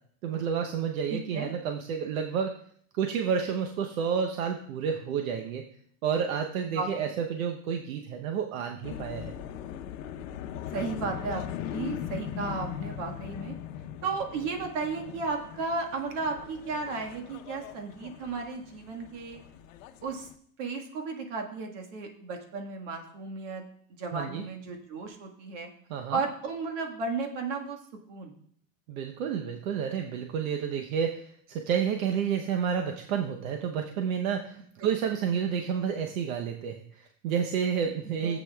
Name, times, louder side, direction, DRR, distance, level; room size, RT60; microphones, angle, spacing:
voice 1, 0.2-2.5 2.9-5.6 6.0-9.3 24.1-24.4 25.9-26.2 28.9-38.4, right 7 dB, 75° right, 4 dB, 0.9 m, -30 dB
voice 2, 1.1-1.5 6.7-7.1 10.7-11.4 11.7-13.5 14.0-19.4 20.0-20.3 20.6-23.6 23.9-25.7 26.1-27.8 28.1-28.4 34.8-34.9 38.2-38.4, right 4 dB, 60° right, 3 dB, 1.7 m, -34 dB
sound 1, 8.8-20.3, left 10 dB, 70° left, 0.8 m, -40 dB
15.0 x 8.3 x 2.3 m, 0.63 s
supercardioid pair, 175°, 41 cm